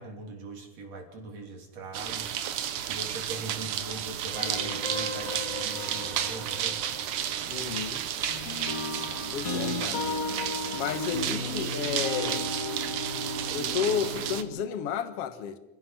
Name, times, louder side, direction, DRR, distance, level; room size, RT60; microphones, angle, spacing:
voice 1, 0.0-2.3 2.8-6.8 11.1-11.3, right 2 dB, 60° right, 4.3 m, -41 dB
sound 1, 1.9-14.4, right 10 dB, 85° right, 2.7 m, -32 dB
sound 2, 4.3-7.7 8.2-14.7, left 2 dB, 40° left, 1.3 m, -36 dB
voice 2, 7.5-8.0 9.3-10.1 10.7-12.5 13.5-15.6, left 7 dB, 55° left, 2.2 m, -32 dB
28.5 x 15.5 x 6.1 m
omnidirectional pair, 3.5 m